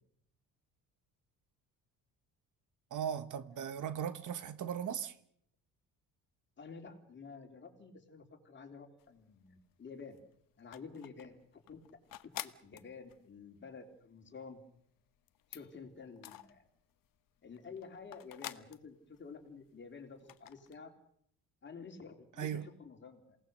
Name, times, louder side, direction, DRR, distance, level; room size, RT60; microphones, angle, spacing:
voice 1, 2.9-5.2 22.4-22.7, right 9 dB, 55° right, 1.3 m, -38 dB
voice 2, 6.6-10.2 10.6-11.8 12.2-14.6 15.5-16.7 17.4-20.9 21.6-23.4, left 5 dB, 30° left, 3.6 m, -50 dB
sound 1, 9.0-9.7 10.0-17.1 17.4-19.8 20.1-20.8, left 13 dB, 65° left, 1.2 m, -50 dB
27.5 x 18.5 x 6.5 m
cardioid pair, 135°, 36 cm